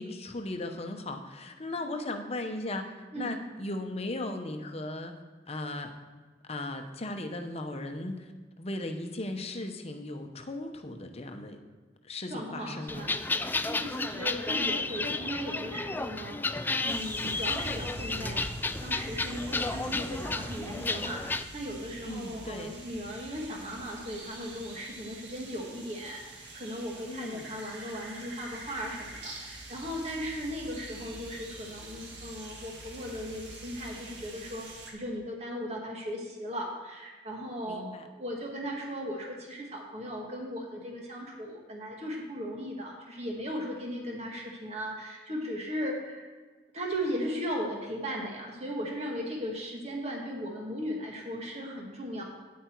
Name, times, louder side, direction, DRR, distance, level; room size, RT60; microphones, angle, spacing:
voice 1, 0.0-5.1 5.5-5.9 6.5-8.3 8.6-11.6 12.0-13.0 22.0-22.7 27.0-27.5 37.7-38.1, left 2 dB, 35° left, 6 dB, 0.9 m, -37 dB
voice 2, 12.3-18.4 18.8-21.2 21.5-46.3 46.7-52.2, equal, 40° right, -1 dB, 1.8 m, -37 dB
sound 1, 12.9-21.4, left 3 dB, 10° left, 0.3 m, -32 dB
sound 2, 16.9-34.9, right 1 dB, 80° right, 1.7 m, -44 dB
9.4 x 8.6 x 4.6 m, 1.4 s
head